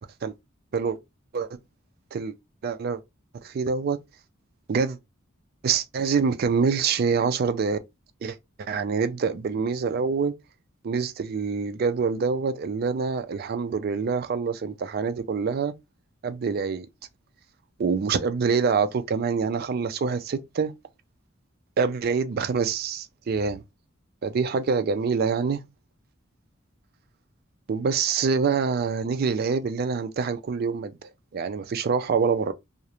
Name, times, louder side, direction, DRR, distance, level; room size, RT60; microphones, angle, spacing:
voice 1, 2.6-3.0 3.4-4.0 4.7-5.0 5.6-7.8 8.2-10.3 10.8-15.7 16.2-16.9 17.8-20.7 21.8-23.6 24.2-25.6 27.7-32.5, right 5 dB, 50° right, 0.3 m, -25 dB
2.4 x 2.0 x 2.8 m
head